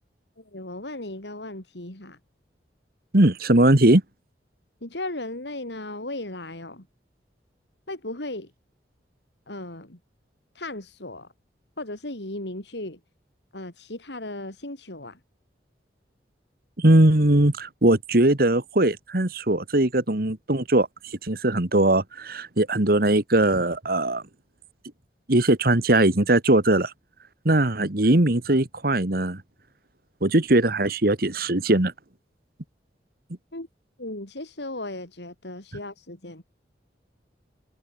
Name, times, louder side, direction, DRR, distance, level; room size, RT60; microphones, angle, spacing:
voice 1, 0.4-2.2 4.8-6.9 7.9-8.5 9.5-10.0 10.5-11.3 11.8-13.0 13.5-15.2 33.5-33.7 34.0-36.4, left 2 dB, 75° left, 4.2 m, -36 dB
voice 2, 3.1-4.0 16.8-24.2 25.3-26.9 27.5-29.4 30.2-31.9, right 1 dB, 55° right, 1.9 m, -20 dB
head